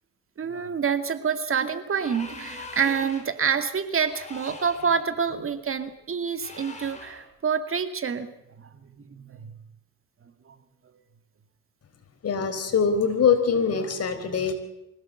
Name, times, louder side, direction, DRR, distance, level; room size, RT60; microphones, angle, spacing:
voice 1, 0.4-8.3 8.6-9.5 10.5-10.6, right 6 dB, 45° right, 9 dB, 2.2 m, -27 dB
sound 1, 1.9-3.4 4.0-5.0 6.4-7.3, left 3 dB, 25° left, 5.9 m, -42 dB
voice 2, 12.2-14.5, left 6 dB, 55° left, 7 dB, 4.6 m, -23 dB
24.5 x 17.0 x 7.9 m, 0.89 s
cardioid pair, 90°, 30 cm